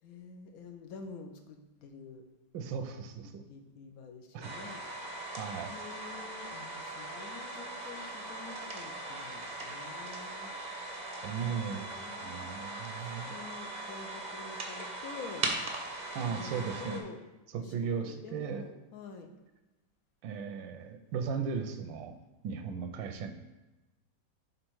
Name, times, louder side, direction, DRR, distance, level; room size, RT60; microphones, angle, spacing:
voice 1, 0.0-2.2 3.2-4.8 5.7-10.5 11.4-12.4 13.0-15.5 16.2-17.2 17.5-19.3, left 5 dB, 65° left, 5 dB, 1.0 m, -48 dB
voice 2, 2.5-3.4 4.3-4.5 5.4-5.7 11.2-13.3 16.1-17.0 17.5-18.6 20.2-22.2 22.4-23.3, right 6 dB, 80° right, 7 dB, 1.3 m, -36 dB
sound 1, 4.4-17.0, right 2 dB, 45° right, 0.6 m, -40 dB
6.5 x 4.0 x 4.6 m, 1.1 s
omnidirectional pair, 2.0 m